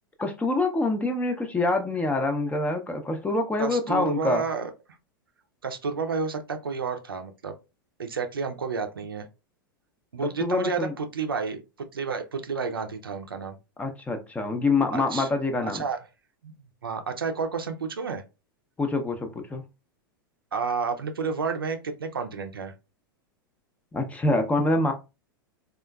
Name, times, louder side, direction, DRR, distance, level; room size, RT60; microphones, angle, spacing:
voice 1, 0.2-4.4 10.4-10.9 13.8-15.8 18.8-19.6 23.9-24.9, left 2 dB, 10° left, 0.5 m, -26 dB
voice 2, 3.6-4.7 5.6-7.5 8.0-9.3 10.1-11.6 11.9-13.5 14.9-15.3 15.6-16.0 16.4-16.5 16.8-18.2 20.5-22.7, right 5 dB, 80° right, 0.5 m, -30 dB
3.6 x 2.4 x 2.2 m
figure-of-eight pair, 95°, 12 cm